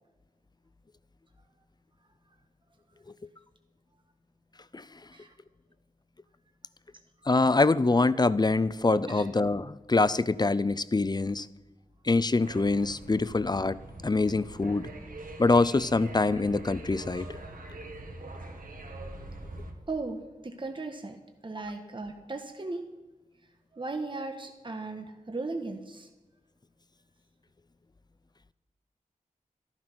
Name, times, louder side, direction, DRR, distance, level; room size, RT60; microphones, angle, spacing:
voice 1, 7.3-11.5 12.0-14.9 15.4-17.4, left 3 dB, 30° left, 17 dB, 0.5 m, -25 dB
sound 1, 12.4-19.7, right 2 dB, 80° right, 1.9 m, -43 dB
voice 2, 19.9-20.2 20.4-21.2 21.4-22.9 23.7-26.1, right 3 dB, 35° right, 5 dB, 1.3 m, -36 dB
13.5 x 11.5 x 6.1 m, 1.1 s
wide cardioid pair, 80°, 14 cm